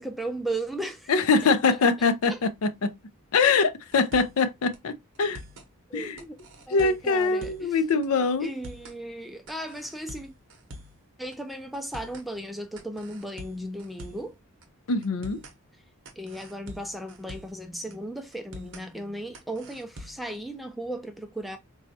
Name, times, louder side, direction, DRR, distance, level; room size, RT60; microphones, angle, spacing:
voice 1, 0.0-1.1 2.0-2.4 5.9-6.4 6.7-7.8 8.4-10.3 11.2-14.3 16.2-21.6, right 1 dB, ahead, 0.4 m, -36 dB
voice 2, 1.1-2.9 3.3-5.4 5.9-6.2 6.7-8.5 14.9-15.4, left 4 dB, 80° left, 0.5 m, -23 dB
sound 1, 3.9-4.4 4.7-4.8 5.1-5.7 6.2-7.7 8.0-8.1 8.4-9.0 9.5-11.0 11.3-11.4 11.7-12.3 12.8-14.3 14.6-14.7 15.0-15.6 16.1-17.6 17.9-18.0 18.3-18.9 19.3-20.3, equal, 55° right, 0.8 m, -45 dB
4.1 x 2.3 x 2.6 m
head